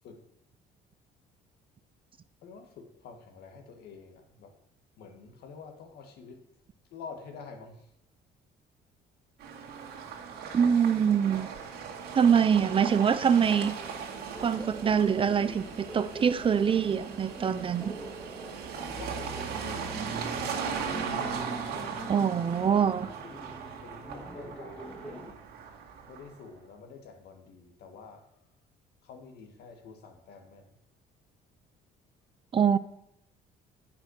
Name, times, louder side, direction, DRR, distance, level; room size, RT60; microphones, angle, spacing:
voice 1, 2.4-4.6 5.0-6.5 6.9-7.9 12.2-12.3 19.0-20.0 23.2-25.5 26.1-28.5 29.0-30.8, left 5 dB, 70° left, 1.7 m, -48 dB
sound 1, 9.4-26.4, right 6 dB, 75° right, 2.0 m, -38 dB
voice 2, 10.5-11.5 12.1-13.7 14.4-17.9 22.1-23.1 32.5-32.8, right 7 dB, 30° right, 0.5 m, -24 dB
Laughter, 14.4-25.3, right 1 dB, 5° left, 2.1 m, -44 dB
8.8 x 5.6 x 6.4 m
cardioid pair, 110°, 17 cm